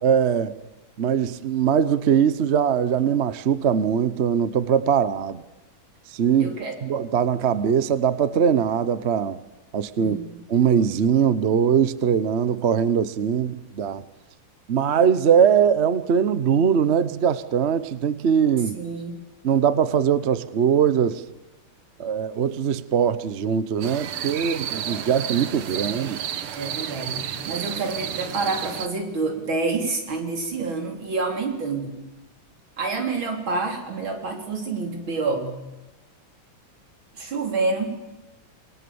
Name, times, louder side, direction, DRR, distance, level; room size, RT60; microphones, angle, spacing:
voice 1, 0.0-0.5 1.0-5.4 6.1-9.4 9.7-10.2 10.5-14.0 14.7-18.8 19.4-21.2 22.0-26.2, right 8 dB, 50° right, 15 dB, 0.8 m, -21 dB
voice 2, 6.4-6.7 10.0-10.4 18.7-19.2 26.6-32.0 32.8-35.5 37.1-37.9, right 3 dB, 65° right, 3 dB, 4.5 m, -28 dB
sound 1, 23.8-28.9, right 9 dB, 85° right, 2.1 m, -31 dB
27.0 x 20.5 x 7.1 m, 1.1 s
omnidirectional pair, 2.3 m